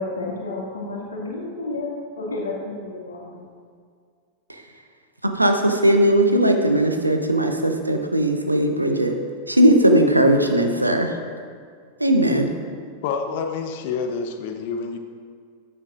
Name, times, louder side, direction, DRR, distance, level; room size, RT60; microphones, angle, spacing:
voice 1, 0.0-3.4, left 2 dB, 70° left, -3 dB, 2.0 m, -31 dB
voice 2, 5.4-9.1 9.5-11.1 12.0-12.5, right 1 dB, 85° right, 5 dB, 0.8 m, -18 dB
voice 3, 13.0-15.0, left 5 dB, 50° left, 6 dB, 0.8 m, -28 dB
13.5 x 9.3 x 2.5 m, 2.1 s
figure-of-eight pair, 90°, 0 cm